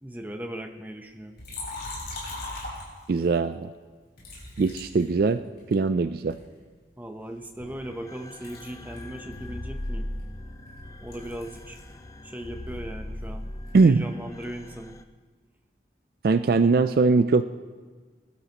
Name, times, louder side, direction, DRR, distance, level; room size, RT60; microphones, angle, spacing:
voice 1, 0.0-1.4 7.0-10.1 11.0-11.8 12.2-13.5 13.8-15.0, right 1 dB, 10° right, 5 dB, 0.7 m, -38 dB
Liquid, 1.4-3.3 4.2-5.7 6.3-8.0 8.3-12.0 12.3-13.9, left 2 dB, 55° left, 4.8 m, -41 dB
voice 2, 3.1-3.7 4.6-5.4 5.7-6.4 13.7-14.1 16.2-17.4, right 4 dB, 55° right, 11 dB, 0.3 m, -21 dB
sound 1, 7.6-15.0, left 1 dB, 20° left, 0.4 m, -39 dB
21.0 x 12.0 x 3.0 m, 1.4 s
head